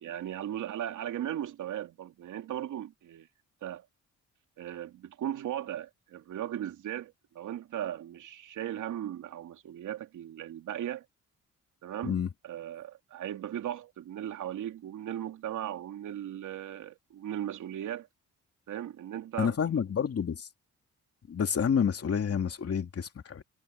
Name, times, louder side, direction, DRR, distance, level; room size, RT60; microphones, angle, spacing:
voice 1, 0.0-3.3 3.6-3.9 4.6-11.0 11.8-12.2 12.4-18.1 18.7-19.5, right 11 dB, 80° right, 2.8 m, -37 dB
voice 2, 19.4-20.5 21.3-23.4, left 7 dB, 50° left, 2.6 m, -29 dB
cardioid pair, 65°, 30 cm